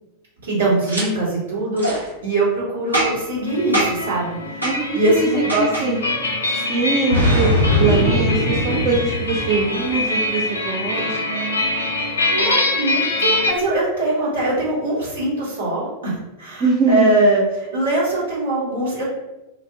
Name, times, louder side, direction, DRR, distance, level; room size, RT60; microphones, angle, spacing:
voice 1, 0.4-4.7 4.9-5.9 12.3-19.1, right 2 dB, 65° right, -7 dB, 1.1 m, -22 dB
Boom, 0.9-1.0 1.8-2.0 2.9-3.3 3.7-4.1 4.6-4.8 5.5-5.9 7.1-9.8, equal, 85° right, 0.9 m, -20 dB
sound 1, 3.5-13.5, left 2 dB, 70° left, 0.4 m, -24 dB
voice 2, 4.6-6.0 6.5-11.6 16.6-17.1, right 4 dB, 30° right, -2 dB, 0.4 m, -22 dB
2.2 x 2.0 x 3.5 m, 0.96 s
figure-of-eight pair, 90°, 0 cm